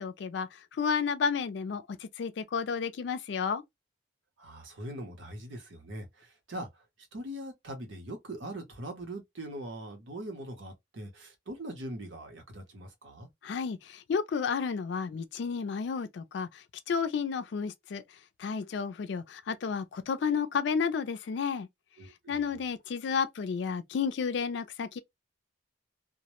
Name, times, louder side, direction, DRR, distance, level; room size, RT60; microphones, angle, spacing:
voice 1, 0.0-3.6 13.4-18.0 18.4-21.7 22.3-25.0, left 6 dB, 70° left, 0.3 m, -32 dB
voice 2, 4.4-6.8 7.1-13.3 22.0-22.6, right 1 dB, 90° right, 0.8 m, -42 dB
2.1 x 2.0 x 2.9 m
head